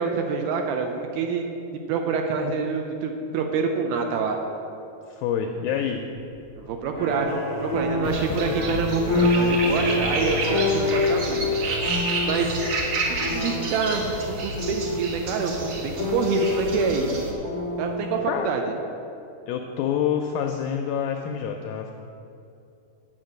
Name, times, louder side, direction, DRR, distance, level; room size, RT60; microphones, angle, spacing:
voice 1, 0.0-1.4 1.9-4.4 6.6-11.4 12.2-12.5 13.1-17.1 17.8-18.6, right 5 dB, 80° right, 4 dB, 2.3 m, -27 dB
voice 2, 5.1-6.0 8.0-8.4 8.7-8.8 18.3-18.5 19.5-21.9, left 8 dB, 85° left, 4 dB, 2.1 m, -27 dB
sound 1, 5.9-12.0, equal, 40° right, 0.5 m, -44 dB
sound 2, 6.9-18.2, left 3 dB, 15° left, 0.9 m, -27 dB
sound 3, 8.0-17.3, right 2 dB, 60° right, 1.8 m, -30 dB
9.5 x 5.8 x 7.7 m, 2.8 s
omnidirectional pair, 4.7 m